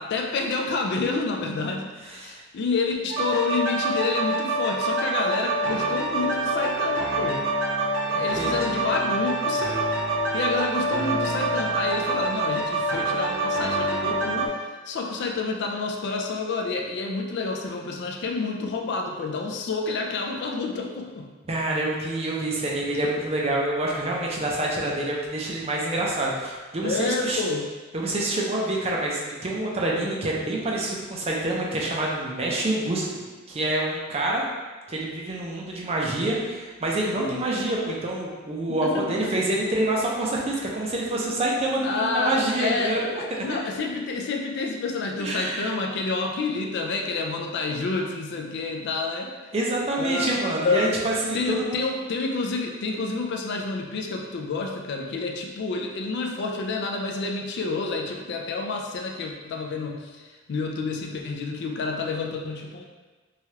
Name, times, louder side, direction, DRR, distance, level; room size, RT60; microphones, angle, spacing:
voice 1, 0.0-7.4 8.0-9.8 10.3-21.3 26.8-27.7 37.1-37.4 38.8-39.3 41.8-49.3 50.0-50.4 50.6-51.0 51.3-62.9, left 3 dB, 55° left, 1 dB, 0.3 m, -29 dB
voice 2, 2.1-2.4 8.2-8.7 21.5-27.4 27.9-34.4 34.9-43.5 45.2-45.7 47.7-47.8 49.5-51.8, right 1 dB, 30° right, -3 dB, 0.4 m, -27 dB
sound 1, 3.1-14.5, right 2 dB, 75° right, 0.9 m, -26 dB
3.2 x 2.3 x 2.8 m, 1.3 s
head